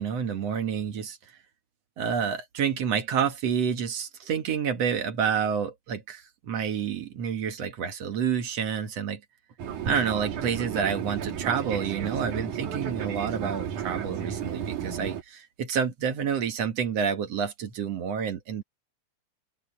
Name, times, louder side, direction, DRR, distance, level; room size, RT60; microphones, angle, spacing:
voice 1, 0.0-1.4 2.0-9.2 9.9-18.6, right 7 dB, 60° right, 2.6 m, -29 dB
Fixed-wing aircraft airplane, 9.6-15.2, right 8 dB, 85° right, 3.5 m, -33 dB
open air
omnidirectional pair, 3.4 m